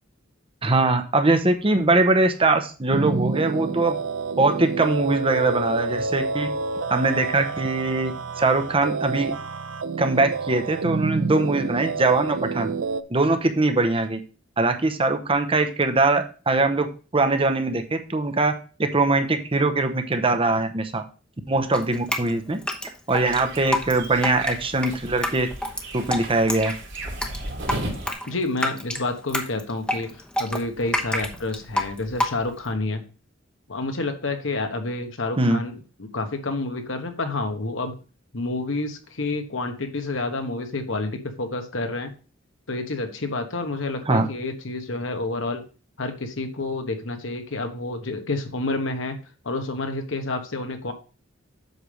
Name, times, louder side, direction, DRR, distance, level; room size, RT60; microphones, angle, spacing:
voice 1, 0.6-4.0 4.4-6.5 6.9-8.1 8.4-9.3 10.0-12.7 13.1-14.2 14.6-16.9 17.1-18.5 18.8-21.0 21.5-22.6 23.1-25.5 25.9-26.7 35.4-35.6 44.1-44.3, right 2 dB, 30° right, 7 dB, 0.8 m, -22 dB
sound 1, 2.9-13.0, right 4 dB, 85° right, 0.6 m, -28 dB
Drip, 21.7-32.7, left 1 dB, 5° left, 0.9 m, -29 dB
sound 2, 23.1-28.1, right 1 dB, 65° right, 2.4 m, -35 dB
voice 2, 28.3-33.0 33.7-38.0 38.3-42.1 42.7-45.6 46.0-49.2 49.4-50.9, left 2 dB, 70° left, 7 dB, 1.2 m, -29 dB
8.0 x 3.4 x 6.3 m, 0.35 s
head